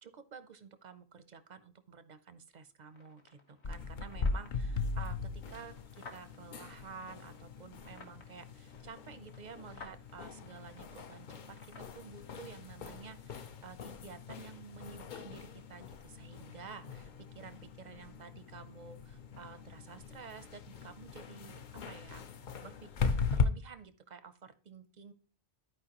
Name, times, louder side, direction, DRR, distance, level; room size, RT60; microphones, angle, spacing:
voice 1, 0.0-22.3 22.6-25.1, right 6 dB, 50° right, 12 dB, 0.6 m, -51 dB
sound 1, 2.9-12.0, left 3 dB, 65° left, 1.6 m, -57 dB
sound 2, 3.6-23.5, left 4 dB, 50° left, 0.6 m, -39 dB
12.5 x 4.6 x 2.9 m, 0.40 s
omnidirectional pair, 1.2 m